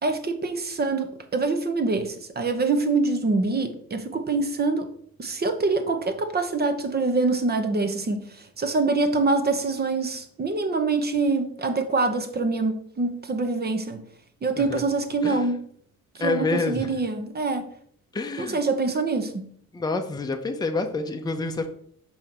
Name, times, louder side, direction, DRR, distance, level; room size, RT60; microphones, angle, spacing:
voice 1, 0.0-4.9 5.2-14.0 14.4-15.7 16.1-17.7 18.4-19.5, right 3 dB, 30° right, 0.8 m, -25 dB
voice 2, 16.2-17.0 18.1-18.6 19.7-21.7, left 3 dB, 15° left, 0.7 m, -28 dB
5.7 x 4.0 x 4.4 m
cardioid pair, 100°, 31 cm